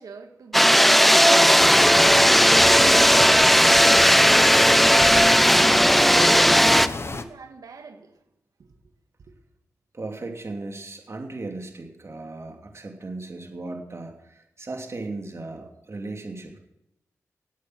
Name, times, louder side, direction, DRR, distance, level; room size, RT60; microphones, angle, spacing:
voice 1, 0.0-5.7 6.2-8.2 8.6-8.7, right 5 dB, 75° right, 2.0 m, -42 dB
sound 1, 0.5-6.9, equal, ahead, 0.7 m, -16 dB
sound 2, 1.6-7.2, left 3 dB, 45° left, 1.2 m, -32 dB
voice 2, 9.9-16.6, right 2 dB, 45° right, 2.7 m, -36 dB
16.5 x 8.5 x 6.3 m
supercardioid pair, 40°, 6 cm